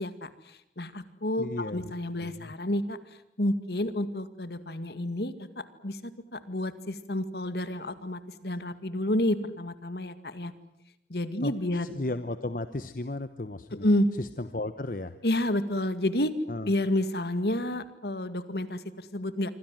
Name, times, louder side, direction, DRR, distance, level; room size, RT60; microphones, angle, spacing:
voice 1, 0.0-3.0 3.4-10.5 11.1-11.9 13.8-14.1 15.2-16.3 16.7-19.5, left 1 dB, 65° left, 12 dB, 2.1 m, -30 dB
voice 2, 1.4-1.9 2.2-2.5 11.4-13.9 14.2-15.2 16.5-16.7, left 2 dB, 50° left, 11 dB, 1.0 m, -35 dB
27.0 x 25.0 x 7.7 m, 0.83 s
head